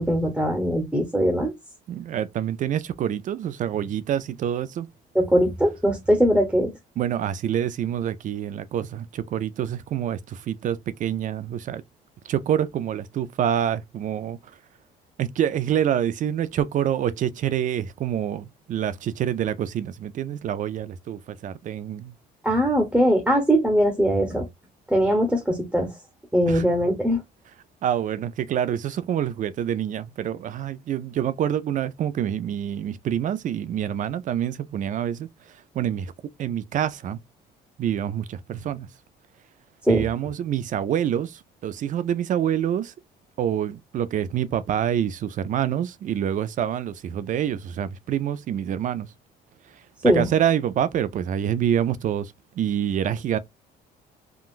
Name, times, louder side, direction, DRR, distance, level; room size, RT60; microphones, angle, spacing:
voice 1, 0.0-1.5 5.1-6.7 22.4-24.5 24.9-25.9 26.3-27.2 39.9-40.0 50.0-50.3, equal, 5° right, 1.0 m, -21 dB
voice 2, 1.9-4.9 7.0-11.8 12.2-14.4 15.2-22.1 26.5-26.6 27.8-35.3 35.7-36.1 36.4-37.2 37.8-38.9 39.9-42.9 43.4-49.1 50.0-53.4, right 10 dB, 50° right, 0.5 m, -26 dB
3.7 x 2.3 x 2.5 m
cardioid pair, 110°, 17 cm